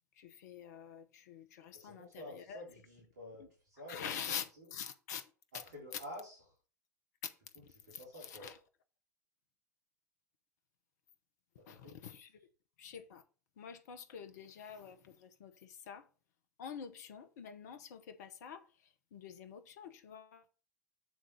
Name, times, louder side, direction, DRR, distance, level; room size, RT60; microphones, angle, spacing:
voice 1, 0.1-2.6 3.4-3.5 3.9-5.6 5.9-6.0 7.2-7.3 7.6-8.6 11.7-12.4 12.8-13.2 13.6-16.1 16.6-20.6, left 8 dB, 65° left, 0.8 m, -47 dB
voice 2, 1.7-4.1 5.7-6.4 7.8-8.5 11.6-12.0, left 1 dB, 70° right, 3.5 m, -49 dB
8.4 x 3.7 x 5.5 m
figure-of-eight pair, 75°, 10 cm